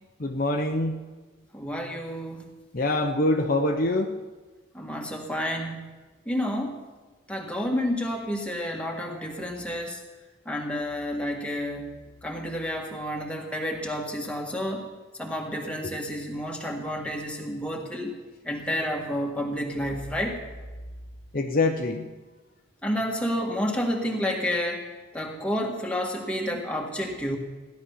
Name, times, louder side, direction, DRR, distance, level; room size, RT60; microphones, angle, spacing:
voice 1, 0.2-1.0 2.7-4.1 21.3-22.1, left 2 dB, 45° left, 4 dB, 0.8 m, -24 dB
voice 2, 1.5-2.4 4.7-5.9 6.2-6.8 7.3-10.0 10.4-11.9 12.2-14.9 15.2-18.2 18.4-20.4 22.8-24.9 25.1-27.4, equal, 5° left, 0 dB, 1.7 m, -30 dB
16.0 x 11.5 x 5.6 m, 1.3 s
head